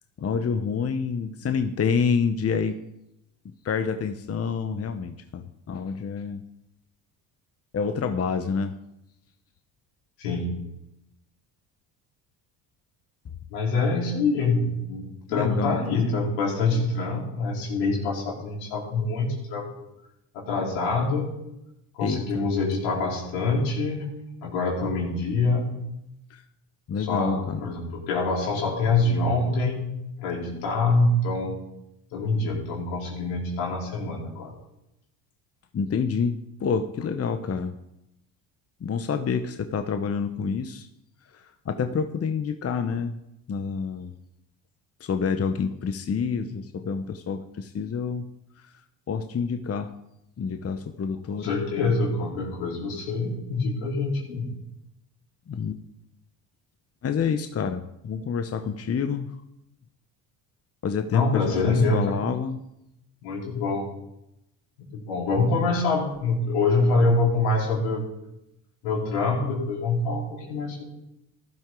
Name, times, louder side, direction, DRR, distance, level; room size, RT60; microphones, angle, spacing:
voice 1, 0.2-2.8 3.6-6.4 7.7-8.8 15.3-16.1 22.0-22.4 26.3-26.4 26.9-27.6 35.7-37.8 38.8-40.9 41.3-43.2 43.5-44.1 45.0-48.3 49.1-49.9 50.4-51.5 55.5-55.8 57.0-59.3 60.8-62.6, left 6 dB, 30° left, 8 dB, 0.9 m, -28 dB
voice 2, 10.2-10.5 13.5-19.7 20.3-21.3 22.0-24.1 24.4-25.8 27.0-31.6 32.1-34.5 51.3-54.5 61.1-62.2 63.2-63.9 64.9-68.1 68.8-70.8, left 3 dB, 80° left, -3 dB, 4.3 m, -25 dB
15.0 x 11.5 x 3.8 m, 0.85 s
supercardioid pair, 70°, 45 cm